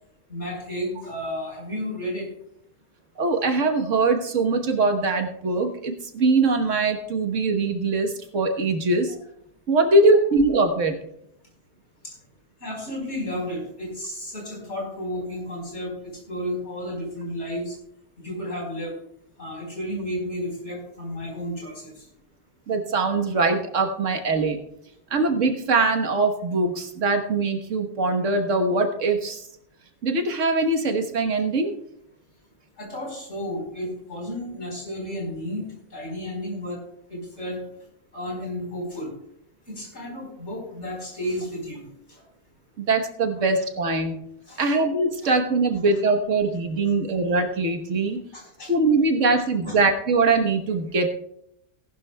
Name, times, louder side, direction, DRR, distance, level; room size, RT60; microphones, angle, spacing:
voice 1, 0.3-2.3 12.0-12.1 12.6-15.9 16.3-17.7 18.2-18.9 19.4-22.0 32.8-36.8 37.1-37.6 38.1-39.1 39.7-41.8 42.1-42.2 44.5-44.7 45.2-45.3 48.3-48.7 49.6-49.7, equal, 65° left, -1 dB, 4.8 m, -32 dB
voice 2, 3.2-9.1 9.7-11.0 22.7-24.6 25.1-29.4 30.0-31.7 42.8-44.2 44.6-48.2 48.7-51.1, right 3 dB, 80° right, 5 dB, 1.6 m, -22 dB
18.5 x 11.5 x 2.2 m, 0.74 s
omnidirectional pair, 1.3 m